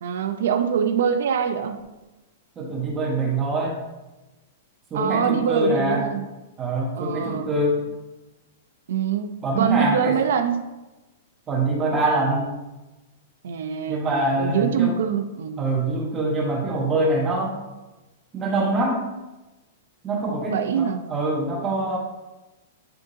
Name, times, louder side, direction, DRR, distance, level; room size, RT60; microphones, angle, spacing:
voice 1, 0.0-1.9 4.9-6.2 7.0-7.5 8.9-10.6 13.4-14.1 14.4-15.6 20.5-21.0, right 7 dB, 75° right, 7 dB, 0.6 m, -24 dB
voice 2, 2.5-3.8 4.9-6.0 6.6-7.9 9.4-10.2 11.5-12.5 13.9-14.9 15.6-17.6 18.3-19.1 20.0-22.0, right 2 dB, 20° right, -2 dB, 1.3 m, -24 dB
10.5 x 3.7 x 2.8 m, 1.1 s
hypercardioid pair, 150°, 0 cm